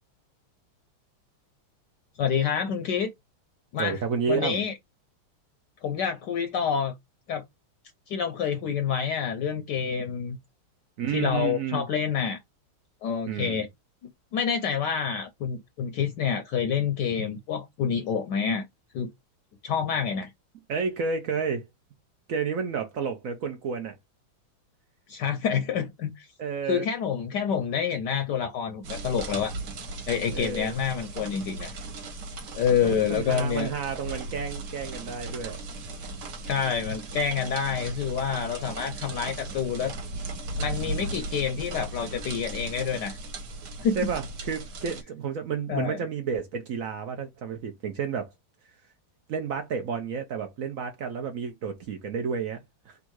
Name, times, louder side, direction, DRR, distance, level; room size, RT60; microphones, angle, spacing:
voice 1, 2.2-3.1 3.7-4.0 4.3-4.7 5.8-6.9 7.3-7.4 8.1-10.4 11.1-12.4 13.0-13.7 14.3-18.6 18.9-19.1 19.6-20.3 25.1-26.3 26.7-29.5 30.1-31.7 32.5-33.7 36.5-39.9 40.6-43.2 43.8-44.0 45.7-46.0, left 7 dB, 70° left, 1.1 m, -27 dB
voice 2, 3.8-4.6 11.0-11.8 13.3-13.6 20.7-21.6 22.3-23.9 26.4-26.9 30.3-30.7 32.8-35.6 44.0-48.3 49.3-52.6 52.9-53.0, right 6 dB, 85° right, 0.7 m, -31 dB
sound 1, 28.8-45.0, right 2 dB, 60° right, 1.5 m, -37 dB
3.6 x 2.6 x 4.5 m
omnidirectional pair, 2.3 m